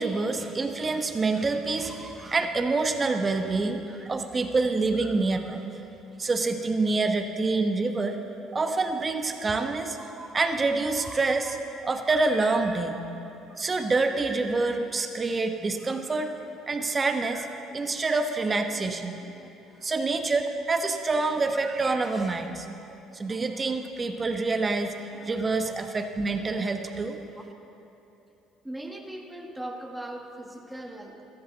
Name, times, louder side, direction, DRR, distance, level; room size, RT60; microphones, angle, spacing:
voice 1, 0.0-5.6 6.2-8.2 8.5-13.0 13.6-16.4 16.7-17.5 17.7-19.1 19.8-22.7 23.1-27.2, right 3 dB, 30° right, 6 dB, 1.1 m, -27 dB
voice 2, 28.6-31.2, right 1 dB, 10° right, 2 dB, 1.7 m, -39 dB
15.0 x 13.5 x 4.1 m, 2.9 s
supercardioid pair, 75°, 0 cm